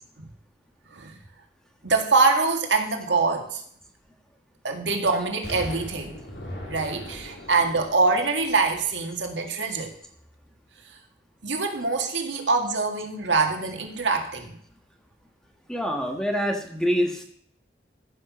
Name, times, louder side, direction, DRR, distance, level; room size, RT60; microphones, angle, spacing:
voice 1, 1.8-3.6 4.6-6.1 6.7-9.9 11.4-14.5, right 4 dB, 85° right, 3 dB, 1.9 m, -24 dB
Explosion, 5.4-9.4 9.8-9.9, equal, 70° left, 3.2 m, -40 dB
voice 2, 15.7-17.2, equal, 5° left, 2 dB, 1.5 m, -25 dB
14.5 x 5.9 x 6.2 m, 0.64 s
head